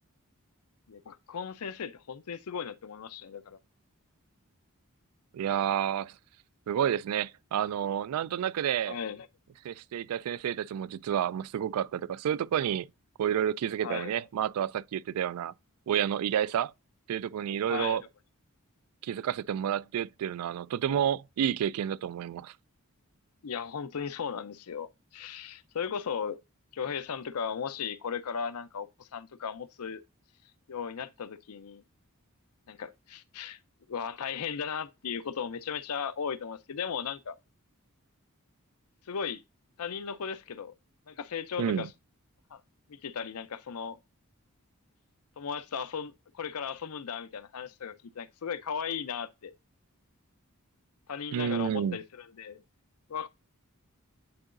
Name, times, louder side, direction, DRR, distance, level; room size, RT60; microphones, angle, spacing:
voice 1, 0.9-3.6 8.9-9.3 13.8-14.2 17.7-18.0 23.4-26.4 26.7-30.0 30.7-31.8 32.7-33.6 33.9-37.4 39.1-39.4 39.8-40.7 41.1-41.9 42.5-42.6 42.9-44.0 45.4-49.5 51.1-52.6 53.1-53.3, left 7 dB, 85° left, 0.6 m, -36 dB
voice 2, 5.3-6.1 6.7-9.0 9.6-12.9 13.2-15.5 15.9-16.7 17.1-18.0 19.0-22.5 41.6-41.9 51.3-52.0, right 9 dB, 80° right, 0.3 m, -30 dB
9.6 x 3.9 x 2.5 m
head